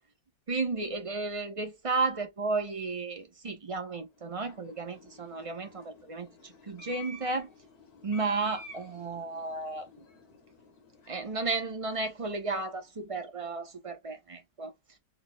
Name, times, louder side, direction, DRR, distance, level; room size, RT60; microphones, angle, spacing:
voice 1, 0.5-7.5 8.0-10.0 11.1-14.7, right 3 dB, 30° right, 0.6 m, -33 dB
sound 1, 4.1-12.6, left 2 dB, 55° left, 1.8 m, -51 dB
4.9 x 3.6 x 2.2 m
omnidirectional pair, 2.1 m